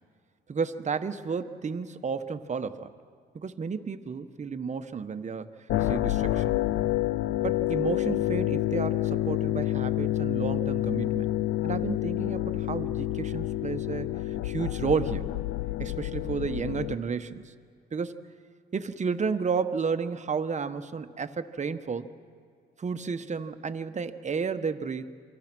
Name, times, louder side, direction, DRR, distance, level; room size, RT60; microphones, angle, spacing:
voice 1, 0.5-2.9 3.3-5.5 5.8-6.4 7.4-11.3 11.6-15.3 15.8-17.5 17.9-18.2 18.7-22.1 22.8-25.0, right 5 dB, 35° right, 9 dB, 1.2 m, -32 dB
sound 1, 5.7-16.9, left 14 dB, 90° left, 0.6 m, -28 dB
28.0 x 23.5 x 6.2 m, 2.2 s
cardioid pair, 90°, 20 cm